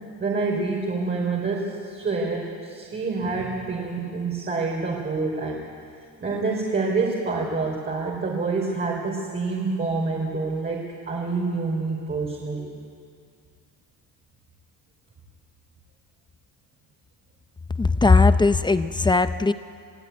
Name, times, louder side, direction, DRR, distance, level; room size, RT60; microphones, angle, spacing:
voice 1, 0.2-5.6 6.2-12.7, right 3 dB, 25° right, -3 dB, 3.8 m, -27 dB
voice 2, 17.8-19.5, left 3 dB, 10° left, 11 dB, 0.5 m, -18 dB
29.0 x 17.5 x 9.4 m, 2.3 s
cardioid pair, 160°, 37 cm